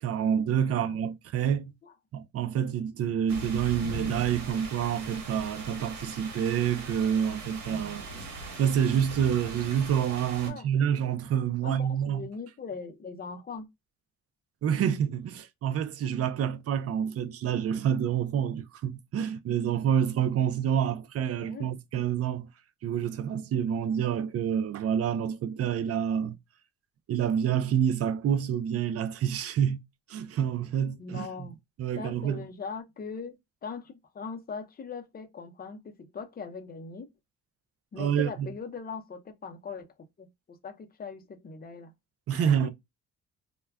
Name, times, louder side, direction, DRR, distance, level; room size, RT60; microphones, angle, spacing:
voice 1, 0.0-1.6 2.1-8.1 8.6-12.3 14.6-22.5 22.8-26.4 27.1-29.8 30.1-31.5 31.8-32.4 38.0-38.5 42.3-42.7, right 8 dB, 50° right, 0.5 m, -28 dB
voice 2, 0.7-1.0 1.8-1.9 7.6-7.9 10.4-10.7 11.6-13.7 21.4-21.8 31.0-31.6 32.0-33.4 33.6-37.1 37.9-39.9 40.2-41.9 42.3-42.7, left 5 dB, 30° left, 0.6 m, -40 dB
sound 1, 3.3-10.5, right 3 dB, 70° right, 1.1 m, -40 dB
2.2 x 2.2 x 3.4 m
cardioid pair, 90°, 30 cm